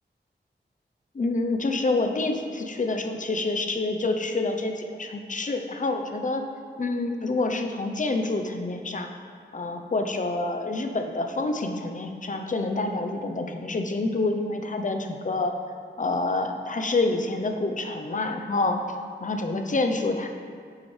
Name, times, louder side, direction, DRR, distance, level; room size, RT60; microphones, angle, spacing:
voice 1, 1.1-6.4 6.8-9.1 9.5-15.5 16.0-18.8 19.2-20.3, left 2 dB, 45° left, 4 dB, 0.7 m, -27 dB
9.8 x 7.2 x 3.3 m, 2.1 s
wide cardioid pair, 110°, 18 cm